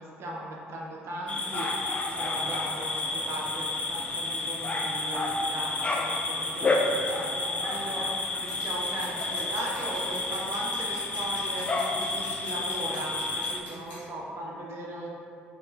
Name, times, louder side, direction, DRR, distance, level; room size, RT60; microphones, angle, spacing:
voice 1, 0.0-15.1, right 1 dB, 50° right, -2 dB, 0.5 m, -38 dB
sound 1, 1.3-13.6, left 2 dB, 20° left, 0.3 m, -30 dB
Scissors, 8.5-14.0, left 1 dB, 80° left, 0.9 m, -47 dB
3.4 x 2.4 x 2.6 m, 2.6 s
figure-of-eight pair, 50°, 6 cm